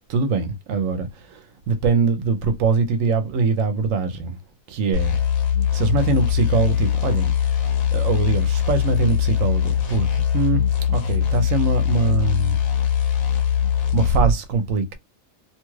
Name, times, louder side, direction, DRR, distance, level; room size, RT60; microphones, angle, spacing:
voice 1, 0.1-4.4 4.7-5.2 5.7-12.6 13.9-14.9, right 4 dB, 75° right, 1.0 m, -23 dB
sound 1, 4.9-14.4, left 8 dB, 75° left, 1.2 m, -21 dB
2.8 x 2.3 x 3.1 m
omnidirectional pair, 1.4 m